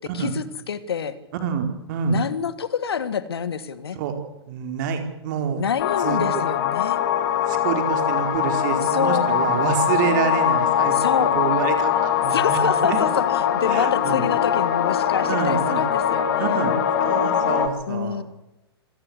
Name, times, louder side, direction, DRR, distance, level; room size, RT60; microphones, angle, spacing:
voice 1, 0.1-1.2 2.1-4.0 5.6-7.0 8.9-9.6 10.9-11.4 12.3-16.6 17.9-18.2, left 7 dB, 65° left, 14 dB, 1.8 m, -27 dB
voice 2, 1.4-2.2 3.9-4.2 4.5-5.6 6.0-6.2 7.5-13.0 13.7-14.2 15.3-15.8 16.4-18.2, right 7 dB, 45° right, 6 dB, 4.2 m, -27 dB
sound 1, 5.8-17.7, left 9 dB, 45° left, 2.7 m, -22 dB
26.0 x 17.0 x 8.0 m, 0.94 s
figure-of-eight pair, 110°, 14 cm